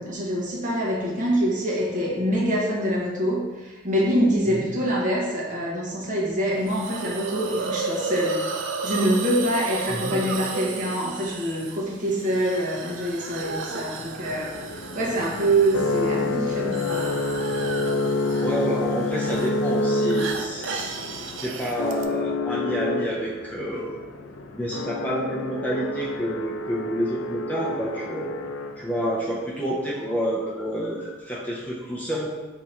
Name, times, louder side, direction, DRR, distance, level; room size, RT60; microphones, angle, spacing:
voice 1, 0.0-8.4 8.8-14.5 14.9-17.1, right 1 dB, 40° right, -4 dB, 0.9 m, -25 dB
Hiss, 6.7-22.0, right 4 dB, 70° right, 0.4 m, -34 dB
voice 2, 9.9-10.2 18.4-24.0 24.5-28.3 28.8-32.3, equal, 10° left, -6 dB, 0.5 m, -29 dB
sound 1, 12.9-29.1, left 2 dB, 75° left, 0.4 m, -29 dB
3.6 x 2.8 x 4.2 m, 1.2 s
head